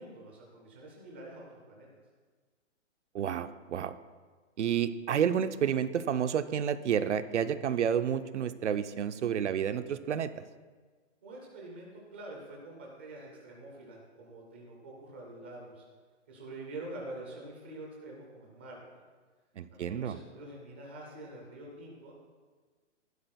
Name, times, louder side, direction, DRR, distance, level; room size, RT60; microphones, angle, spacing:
voice 1, 0.0-1.9 11.2-15.8 16.3-19.0 19.7-22.1, right 2 dB, 10° right, -2 dB, 0.6 m, -46 dB
voice 2, 3.1-4.0 4.6-10.4 19.6-20.2, right 8 dB, 70° right, 12 dB, 0.7 m, -30 dB
15.5 x 11.5 x 2.3 m, 1.4 s
hypercardioid pair, 175°, 37 cm